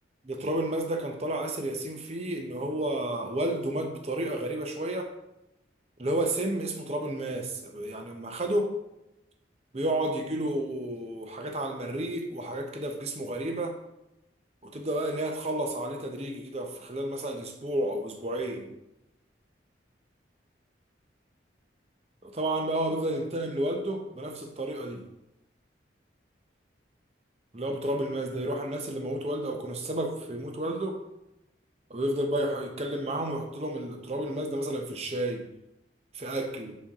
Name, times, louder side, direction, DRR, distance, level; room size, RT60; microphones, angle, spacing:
voice 1, 0.3-5.1 6.0-8.7 9.7-13.8 14.6-18.7 22.2-25.0 27.5-31.0 31.9-35.5 36.1-36.8, right 1 dB, 35° right, 3 dB, 0.8 m, -31 dB
6.2 x 4.3 x 3.6 m, 0.88 s
head